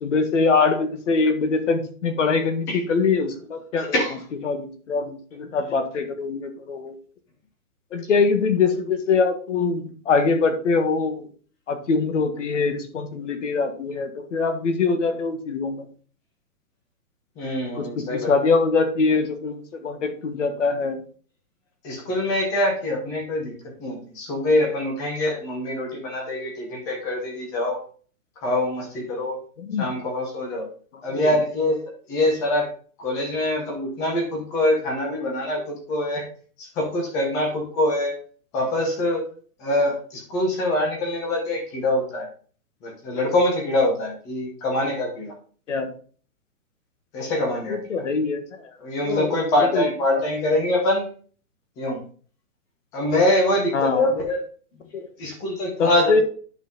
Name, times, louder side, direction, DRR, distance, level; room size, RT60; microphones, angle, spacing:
voice 1, 0.0-3.9 4.4-6.9 7.9-11.3 11.7-15.9 17.7-21.0 29.6-29.9 31.1-31.3 45.7-45.9 47.7-48.4 49.0-49.3 49.7-50.2 53.7-54.0 54.9-55.1 55.8-56.2, left 4 dB, 55° left, 8 dB, 1.6 m, -23 dB
voice 2, 17.4-18.3 21.8-23.5 23.8-27.8 28.4-29.4 29.8-30.6 31.0-31.8 32.1-32.7 33.0-36.2 36.6-38.1 38.5-39.2 39.6-42.2 42.8-45.3 47.1-47.8 48.8-51.0 51.8-52.0 52.9-54.4 55.2-56.2, left 1 dB, 5° left, 1 dB, 0.8 m, -24 dB
10.0 x 5.6 x 3.9 m, 0.43 s
hypercardioid pair, 175°, 45 cm